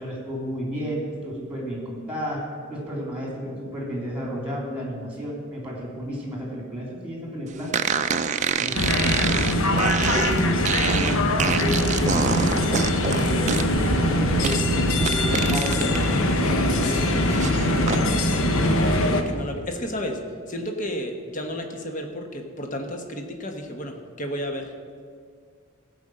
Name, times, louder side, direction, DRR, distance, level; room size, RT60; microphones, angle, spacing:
voice 1, 0.0-2.4 2.7-7.7 8.5-9.0 9.6-15.9 16.4-18.0, equal, 5° right, -2 dB, 2.9 m, -32 dB
sound 1, 7.7-16.0 16.4-18.0, right 6 dB, 35° right, 0.4 m, -27 dB
sound 2, 8.7-19.2, left 1 dB, 75° left, 1.0 m, -22 dB
voice 2, 18.5-20.2 20.5-24.7, equal, 35° left, 4 dB, 1.2 m, -32 dB
15.0 x 5.3 x 7.7 m, 2.1 s
head